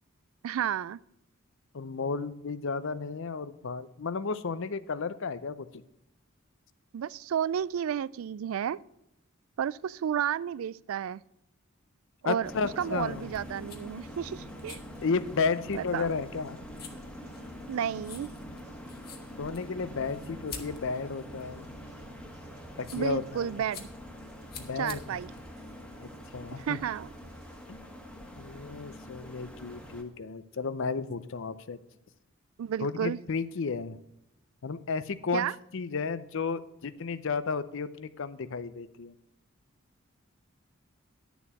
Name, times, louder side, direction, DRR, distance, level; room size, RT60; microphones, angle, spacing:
voice 1, 0.4-1.0 6.9-8.8 9.6-11.2 12.2-12.5 12.8-14.8 15.7-16.1 17.7-18.3 22.9-23.9 24.8-25.3 26.5-27.1 32.6-33.2 35.3-35.6, right 9 dB, 75° right, 0.3 m, -32 dB
voice 2, 1.7-5.8 12.2-13.3 15.0-16.6 19.4-21.7 22.8-23.6 24.6-25.0 26.0-26.8 27.7-27.8 28.4-31.8 32.8-34.0 34.6-35.5 35.7-39.1, left 4 dB, 65° left, 0.6 m, -33 dB
sound 1, 12.4-30.0, equal, 5° left, 1.4 m, -45 dB
sound 2, 12.9-27.6, equal, 50° right, 2.3 m, -57 dB
sound 3, 13.3-26.4, left 6 dB, 50° left, 1.3 m, -50 dB
10.5 x 7.1 x 6.0 m
head